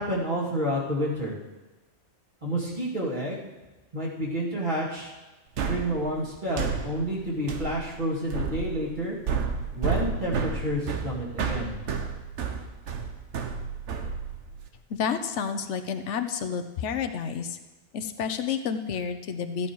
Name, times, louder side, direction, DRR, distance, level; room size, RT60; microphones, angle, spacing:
voice 1, 0.0-1.4 2.4-3.5 3.9-5.1 5.6-9.2 9.7-11.8, equal, 45° right, -5 dB, 2.5 m, -29 dB
sound 1, 5.6-14.7, right 5 dB, 90° right, 1.3 m, -31 dB
voice 2, 14.9-17.6 17.9-19.7, left 7 dB, 90° left, 8 dB, 1.1 m, -30 dB
14.0 x 8.9 x 4.7 m, 1.1 s
omnidirectional pair, 1.2 m